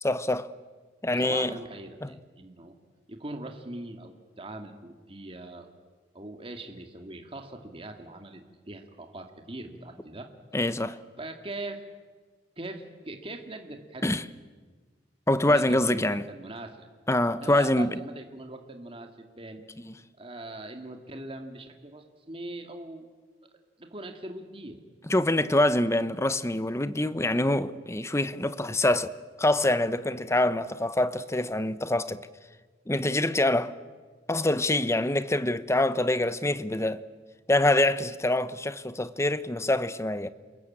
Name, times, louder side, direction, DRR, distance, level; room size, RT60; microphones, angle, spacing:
voice 1, 0.0-0.5 1.0-1.5 2.0-2.1 10.5-11.0 14.0-14.2 15.3-16.3 17.1-17.9 19.8-19.9 25.1-29.1 29.4-32.2 32.9-33.8 34.3-37.0 37.5-40.3, left 1 dB, 15° left, 0.9 m, -25 dB
voice 2, 1.0-2.7 3.1-5.7 6.1-10.3 11.2-11.8 12.6-14.1 15.4-16.9 17.4-19.1 19.4-19.6 20.2-23.1 23.8-24.8, right 2 dB, 30° right, 2.3 m, -41 dB
28.5 x 21.5 x 8.8 m
head